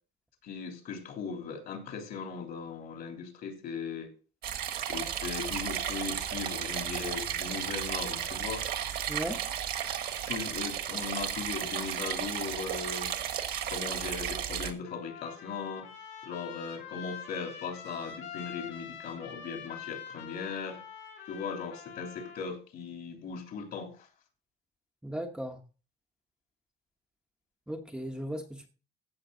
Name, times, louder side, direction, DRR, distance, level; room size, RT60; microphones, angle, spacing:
voice 1, 0.4-4.1 4.9-8.7 10.3-13.1 13.7-15.9 16.2-20.8 21.3-24.1, left 5 dB, 55° left, 3.4 m, -38 dB
sound 1, 4.4-14.7, right 9 dB, 55° right, 1.6 m, -34 dB
voice 2, 9.1-9.5 25.0-25.6 27.7-28.7, equal, 5° right, 1.1 m, -36 dB
Trumpet, 14.9-22.5, left 8 dB, 80° left, 6.7 m, -45 dB
15.5 x 6.8 x 3.9 m
cardioid pair, 170°, 19 cm